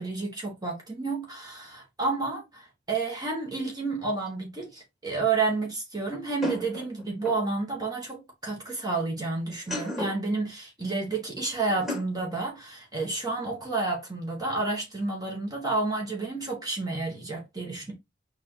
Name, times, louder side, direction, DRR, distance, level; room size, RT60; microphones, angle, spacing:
voice 1, 0.0-2.6 2.9-17.9, right 3 dB, 20° right, 1.2 m, -30 dB
sound 1, 4.3-4.4 6.4-7.5 9.5-10.3 11.7-12.2, left 1 dB, ahead, 2.3 m, -34 dB
6.6 x 2.5 x 3.1 m
head